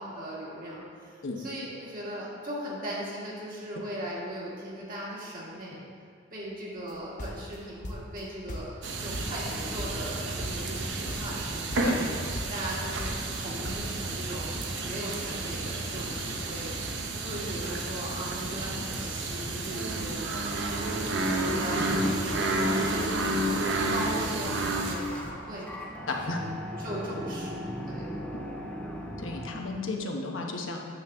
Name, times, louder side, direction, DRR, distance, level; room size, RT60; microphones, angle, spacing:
voice 1, 0.0-5.8 6.3-12.1 12.5-14.5 14.8-16.9 17.2-20.2 21.1-23.6 23.9-25.9 26.2-28.2, right 1 dB, 45° right, -6 dB, 2.0 m, -38 dB
sound 1, 6.9-8.2 8.5-9.5 9.8-10.1 10.4-10.8 11.1-11.4 11.7-12.1 12.4-13.9, left 1 dB, 45° left, 0.8 m, -38 dB
sound 2, 8.8-25.0, right 2 dB, 65° right, 0.8 m, -31 dB
sound 3, 24.8-29.8, equal, 5° left, 0.7 m, -38 dB
voice 2, 26.1-26.4 29.2-30.8, left 3 dB, 85° left, 1 dB, 1.0 m, -33 dB
9.3 x 6.7 x 3.5 m, 2.2 s
head